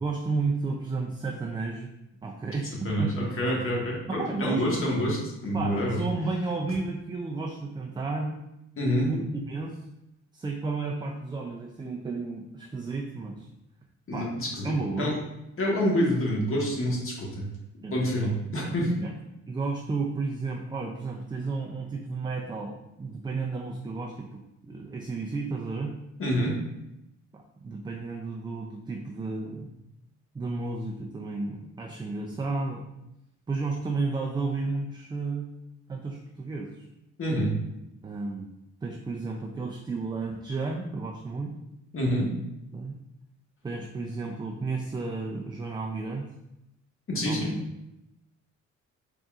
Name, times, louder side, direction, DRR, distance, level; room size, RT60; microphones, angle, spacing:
voice 1, 0.0-1.9 2.2-3.1 4.1-4.9 5.5-8.4 9.1-9.8 10.3-13.5 14.1-14.3 14.6-15.1 17.8-18.0 19.0-19.1 19.5-25.9 27.3-29.7 30.3-32.8 33.5-35.5 35.9-36.9 38.0-38.5 38.8-41.5 42.7-43.0 43.6-46.3 47.3-47.6, right 3 dB, 15° right, 0 dB, 0.4 m, -32 dB
voice 2, 2.8-6.0 8.8-9.1 14.1-15.1 15.6-17.5 17.9-18.9 26.2-26.5 37.2-37.5 41.9-42.3 47.1-47.5, equal, 45° left, -3 dB, 1.4 m, -27 dB
3.9 x 3.5 x 2.4 m, 0.88 s
cardioid pair, 90°, 30 cm